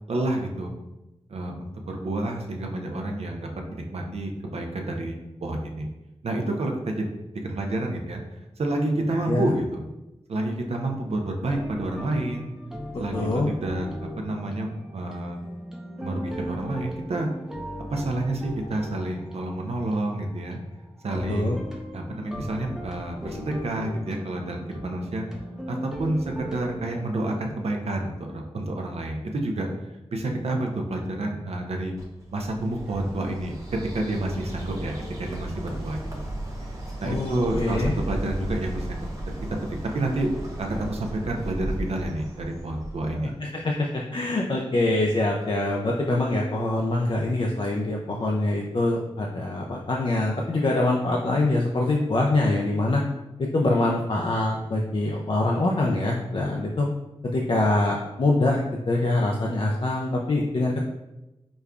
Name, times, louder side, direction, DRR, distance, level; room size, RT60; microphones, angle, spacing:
voice 1, 0.1-0.7 1.3-5.9 6.2-7.1 7.4-9.8 10.3-12.5 13.0-15.4 16.0-17.3 17.9-20.6 21.0-21.7 21.9-25.3 25.7-29.7 30.1-31.9 32.3-36.2 37.0-38.9 39.9-40.3 40.6-43.3, right 1 dB, 70° right, 2 dB, 0.5 m, -29 dB
sound 1, 11.5-26.8, equal, 5° right, 0.5 m, -38 dB
voice 2, 13.1-13.5 21.3-21.6 37.0-37.9 43.1-53.0 53.4-56.9 57.2-60.8, left 2 dB, 50° left, -1 dB, 0.4 m, -24 dB
Bird, 32.0-43.4, right 1 dB, 30° right, 0.9 m, -35 dB
5.1 x 2.2 x 2.4 m, 0.99 s
cardioid pair, 60°, 11 cm